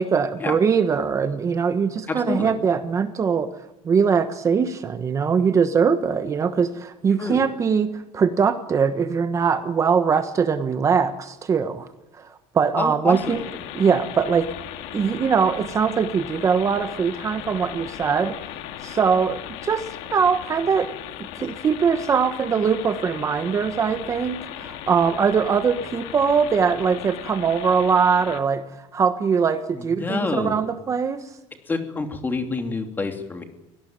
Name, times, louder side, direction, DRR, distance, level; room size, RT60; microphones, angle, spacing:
voice 1, 0.0-3.5 3.8-11.9 12.1-13.4 13.7-14.5 14.9-18.4 18.8-19.8 20.1-20.9 21.4-31.3, right 6 dB, 30° right, 9 dB, 1.2 m, -22 dB
voice 2, 2.1-2.5 7.2-7.4 12.8-13.2 29.7-30.6 31.7-33.4, left 3 dB, 20° left, 5 dB, 2.9 m, -27 dB
sound 1, 13.1-28.4, left 12 dB, 85° left, 2.2 m, -37 dB
24.5 x 17.5 x 9.0 m, 0.93 s
cardioid pair, 140°, 11 cm